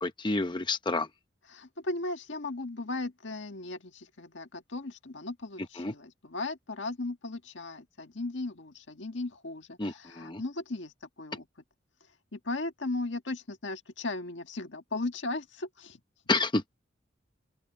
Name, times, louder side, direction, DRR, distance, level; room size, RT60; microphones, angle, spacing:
voice 1, 0.0-1.1 5.8-5.9 9.8-10.4 16.3-16.7, left 3 dB, 25° left, 0.8 m, -29 dB
voice 2, 1.5-10.9 11.2-11.5 12.3-16.0, left 2 dB, 80° left, 1.7 m, -36 dB
open air
head